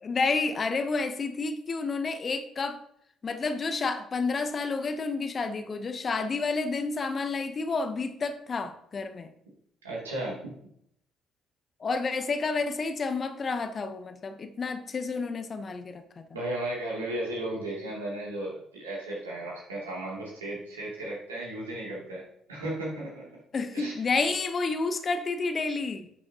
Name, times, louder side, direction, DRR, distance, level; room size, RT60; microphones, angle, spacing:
voice 1, 0.0-2.8 3.2-9.3 11.8-16.2 23.5-26.1, left 4 dB, 40° left, 9 dB, 0.9 m, -30 dB
voice 2, 9.8-10.5 16.3-22.2 22.5-23.3 23.7-24.3, right 1 dB, 90° right, -5 dB, 2.8 m, -35 dB
11.5 x 6.2 x 2.9 m, 0.72 s
hypercardioid pair, 50°, 0 cm